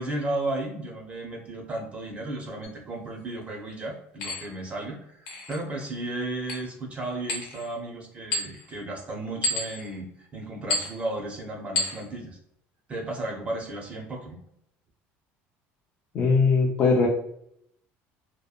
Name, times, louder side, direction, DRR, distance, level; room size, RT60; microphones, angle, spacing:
voice 1, 0.0-12.4 12.9-14.4, right 2 dB, 25° right, 1 dB, 0.6 m, -34 dB
sound 1, 2.6-2.7 4.2-4.5 5.3-5.6 6.5-6.7 7.3-7.7 8.3-8.7 9.4-9.9 10.7-11.0 11.8-12.0, left 2 dB, 80° left, 0.8 m, -30 dB
voice 2, 16.1-17.1, left 4 dB, 35° left, -3 dB, 0.4 m, -20 dB
2.7 x 2.2 x 2.3 m, 0.73 s
cardioid pair, 150°, 5 cm